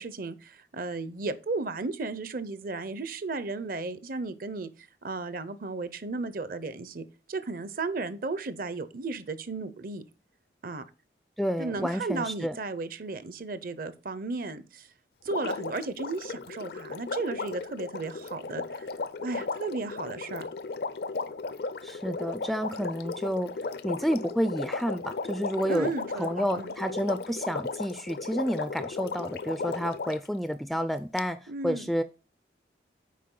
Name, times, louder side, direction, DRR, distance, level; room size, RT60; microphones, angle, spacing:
voice 1, 0.0-4.7 5.0-10.0 10.6-10.8 11.6-14.9 15.2-18.9 19.2-20.5 25.7-26.7 31.5-31.9, right 3 dB, 50° right, 0.7 m, -34 dB
voice 2, 11.4-12.6 21.8-23.5 23.8-25.9 26.2-32.0, equal, ahead, 0.3 m, -30 dB
Water, 15.3-30.3 31.2-31.3, left 4 dB, 60° left, 0.5 m, -35 dB
8.4 x 4.8 x 3.8 m
head